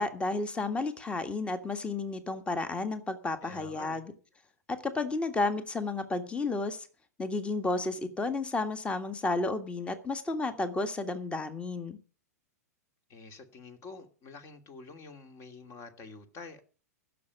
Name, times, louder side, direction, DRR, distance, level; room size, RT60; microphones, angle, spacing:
voice 1, 0.0-4.0 4.7-6.8 7.2-12.0, left 3 dB, 15° left, 10 dB, 1.7 m, -32 dB
voice 2, 3.4-4.0 13.1-16.6, left 4 dB, 35° left, 8 dB, 2.6 m, -47 dB
15.5 x 6.9 x 8.3 m, 0.38 s
hypercardioid pair, 105°, 9 cm